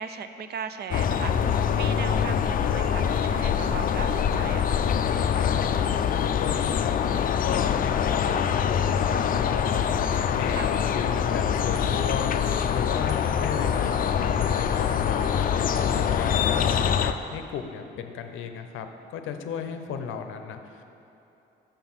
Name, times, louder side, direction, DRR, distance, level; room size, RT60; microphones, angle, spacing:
voice 1, 0.0-4.9 10.5-10.7 16.1-16.3, right 7 dB, 55° right, 10 dB, 0.5 m, -38 dB
sound 1, 0.9-17.1, left 8 dB, 45° left, 0.4 m, -24 dB
voice 2, 5.3-5.6 6.1-6.9 7.4-9.8 10.3-12.3 12.7-15.2 15.8-20.8, left 7 dB, 85° left, 7 dB, 0.6 m, -35 dB
sound 2, 11.7-17.0, right 2 dB, 85° right, 0.9 m, -47 dB
6.8 x 5.9 x 5.6 m, 2.8 s
cardioid pair, 90°, 20 cm